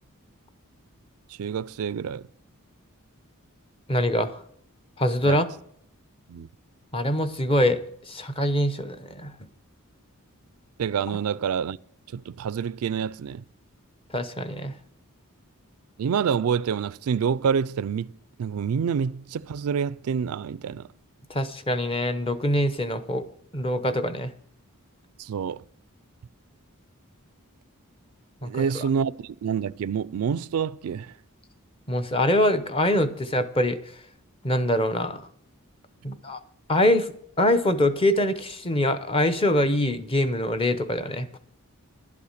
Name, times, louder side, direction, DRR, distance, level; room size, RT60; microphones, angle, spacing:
voice 1, 1.3-2.3 5.2-5.4 6.3-6.5 10.8-11.8 12.1-13.4 16.0-18.1 18.4-20.9 25.2-25.6 28.4-31.1, right 7 dB, 75° right, 0.4 m, -27 dB
voice 2, 3.9-4.4 5.0-5.4 6.9-7.8 8.1-9.3 14.1-14.7 21.3-23.3 23.5-24.3 28.4-28.7 31.9-33.8 34.4-35.2 36.0-36.4 36.7-37.1 37.4-41.4, left 1 dB, 25° left, 0.7 m, -24 dB
11.0 x 8.4 x 6.5 m
head